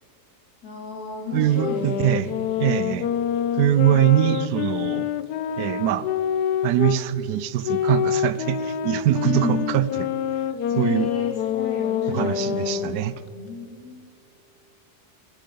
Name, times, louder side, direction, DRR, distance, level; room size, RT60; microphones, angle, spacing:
voice 1, 0.6-2.4 9.2-9.7 10.7-12.9 13.3-14.1, left 3 dB, 65° left, 1 dB, 3.3 m, -32 dB
voice 2, 1.3-2.3 2.6-3.1 3.6-5.1 5.6-6.1 6.6-9.8 10.8-11.1 12.1-13.1, right 13 dB, 80° right, 16 dB, 1.1 m, -22 dB
sound 1, 1.5-7.0 7.6-13.0, left 9 dB, 90° left, 1.3 m, -26 dB
19.0 x 13.0 x 5.3 m, 2.3 s
omnidirectional pair, 1.7 m